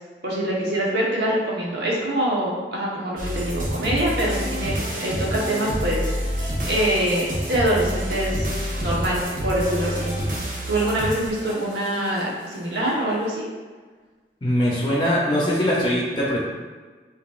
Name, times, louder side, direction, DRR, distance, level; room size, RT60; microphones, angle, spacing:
voice 1, 0.2-6.0 6.3-8.5 8.8-10.1 10.7-13.4, right 1 dB, 75° right, -4 dB, 1.0 m, -24 dB
sound 1, 3.2-12.2, equal, 50° right, 0.9 m, -28 dB
voice 2, 14.4-16.4, equal, 25° left, -5 dB, 0.6 m, -21 dB
4.9 x 2.7 x 2.4 m, 1.4 s
head